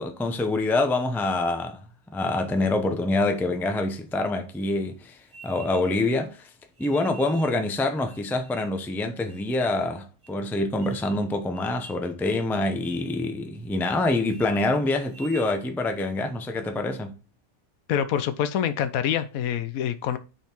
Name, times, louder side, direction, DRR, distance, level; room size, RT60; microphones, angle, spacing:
voice 1, 0.0-1.8 2.1-6.5 6.8-17.1, left 2 dB, ahead, 0.4 m, -26 dB
sound 1, 5.3-6.1 6.8-7.6 8.1-8.8 9.3-9.8 10.2-10.3 10.8-11.2 11.5-12.1 12.3-12.5 12.8-13.1 13.5-14.0 14.2-14.5 15.0-15.6, right 5 dB, 30° right, 1.4 m, -48 dB
voice 2, 17.9-20.2, left 9 dB, 85° left, 1.1 m, -26 dB
5.8 x 4.4 x 4.4 m
omnidirectional pair, 1.4 m